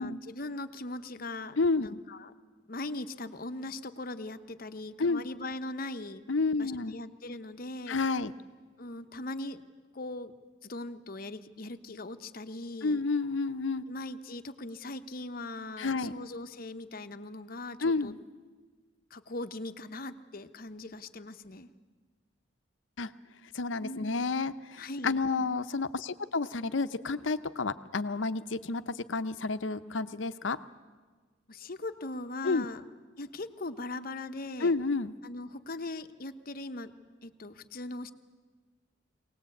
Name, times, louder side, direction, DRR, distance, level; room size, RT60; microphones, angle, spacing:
voice 1, 0.0-2.3 2.7-6.2 6.6-8.0 8.8-9.6 9.9-10.3 10.6-13.0 13.9-18.1 19.1-21.7 23.8-24.3 24.8-25.2 31.5-32.8 33.2-34.8 35.2-36.9 37.2-38.1, left 2 dB, 50° left, 10 dB, 0.9 m, -40 dB
voice 2, 1.6-2.0 5.0-5.3 6.3-6.9 7.9-8.3 12.8-13.8 15.8-16.1 17.8-18.2 23.0-23.1 23.5-30.6 32.4-32.7 34.6-35.1, left 3 dB, 75° left, 11 dB, 0.8 m, -30 dB
23.0 x 18.5 x 8.4 m, 1.4 s
head